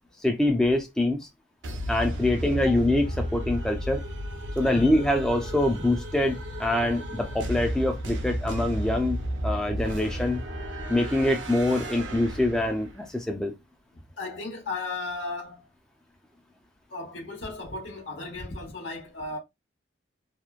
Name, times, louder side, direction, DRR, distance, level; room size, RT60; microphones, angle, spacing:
voice 1, 0.2-1.2 1.9-4.0 4.6-10.4 10.9-13.5, left 1 dB, 5° left, 0.4 m, -25 dB
sound 1, 1.6-13.0, equal, 75° right, 0.6 m, -33 dB
voice 2, 4.6-4.9 14.2-15.7 16.9-19.4, left 3 dB, 80° left, 1.1 m, -35 dB
2.9 x 2.1 x 2.4 m
head